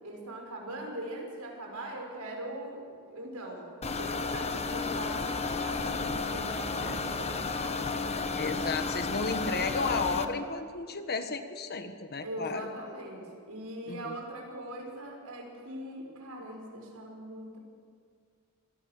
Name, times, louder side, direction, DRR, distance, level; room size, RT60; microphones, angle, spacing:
voice 1, 0.0-8.2 12.2-17.6, right 1 dB, 90° right, 1 dB, 5.7 m, -41 dB
sound 1, 3.8-10.2, left 4 dB, 30° left, 1.1 m, -32 dB
voice 2, 8.3-12.7 13.9-14.1, left 4 dB, 45° left, 8 dB, 1.5 m, -33 dB
25.5 x 19.0 x 6.7 m, 2.1 s
head